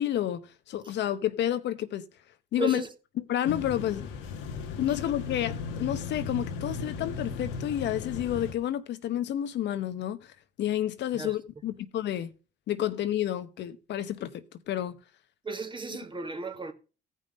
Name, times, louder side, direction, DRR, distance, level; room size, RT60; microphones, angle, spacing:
voice 1, 0.0-2.0 2.5-2.8 3.2-4.1 4.8-10.3 10.6-12.3 12.7-15.0, left 11 dB, 65° left, 1.0 m, -30 dB
voice 2, 2.6-2.9 4.9-5.0 11.1-11.4 15.4-16.7, right 3 dB, 25° right, 2.0 m, -35 dB
sound 1, 3.5-8.5, left 5 dB, 90° left, 1.4 m, -36 dB
15.5 x 5.5 x 5.3 m
supercardioid pair, 85°, 19 cm